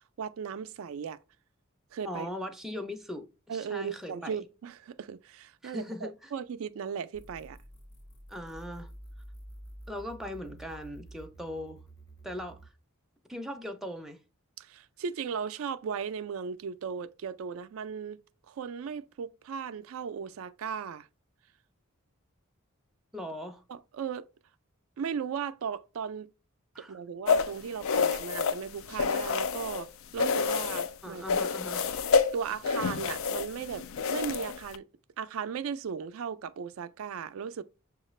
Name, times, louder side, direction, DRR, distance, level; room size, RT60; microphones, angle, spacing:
voice 1, 0.2-1.2 1.9-2.3 3.5-7.6 14.6-18.2 18.5-21.1 23.7-24.3 25.0-26.3 26.8-31.2 32.3-34.9 35.2-37.6, right 6 dB, 80° right, 0.4 m, -37 dB
voice 2, 2.0-4.4 5.6-6.3 8.3-8.9 9.9-11.8 12.2-12.7 13.3-14.2 23.1-23.6 26.7-27.0 31.0-31.8, left 1 dB, ahead, 0.4 m, -39 dB
sound 1, 7.1-12.7, right 1 dB, 55° left, 1.0 m, -49 dB
sound 2, 27.3-29.9 30.2-30.9 31.3-34.8, left 5 dB, 70° left, 0.4 m, -28 dB
6.4 x 2.4 x 3.0 m
head